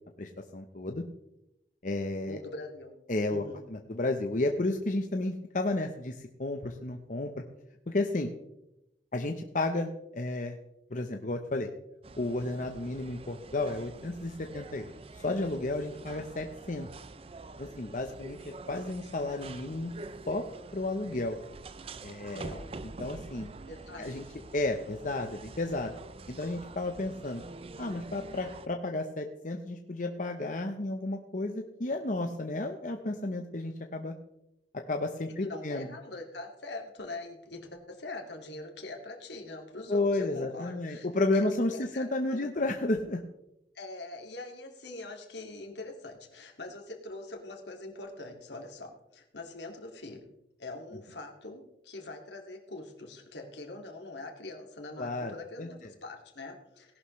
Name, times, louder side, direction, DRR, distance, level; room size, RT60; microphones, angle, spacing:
voice 1, 0.2-1.0 1.8-2.4 3.1-7.3 7.9-8.3 9.1-10.6 10.9-11.7 12.2-16.9 17.6-18.4 18.7-19.9 20.3-20.4 20.7-21.4 22.0-23.5 24.0-24.2 24.5-25.9 26.3-27.4 27.8-34.1 34.7-35.9 39.9-43.2 55.0-55.3 55.6-55.7, left 2 dB, 45° left, 4 dB, 0.9 m, -32 dB
voice 2, 2.3-3.0 3.3-3.6 22.1-22.7 23.7-24.1 35.4-41.1 41.3-41.5 41.7-42.7 43.7-50.3 50.6-57.0, left 2 dB, 80° left, 2 dB, 2.3 m, -43 dB
sound 1, 12.0-28.7, right 3 dB, 35° right, 0.5 m, -46 dB
18.0 x 11.5 x 3.2 m, 0.86 s
head